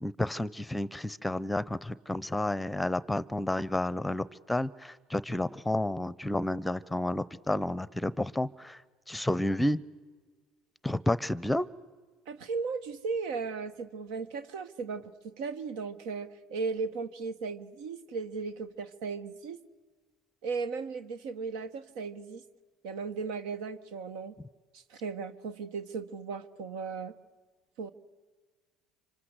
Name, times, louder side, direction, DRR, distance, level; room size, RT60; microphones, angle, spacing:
voice 1, 0.0-8.8 9.1-9.8 10.8-11.7, left 1 dB, 5° left, 19 dB, 0.8 m, -31 dB
voice 2, 12.3-19.6 20.4-22.4 22.8-24.4 24.7-27.1 27.8-27.9, right 4 dB, 75° right, 13 dB, 1.3 m, -36 dB
27.0 x 25.0 x 8.2 m, 1.4 s
supercardioid pair, 80°, 0 cm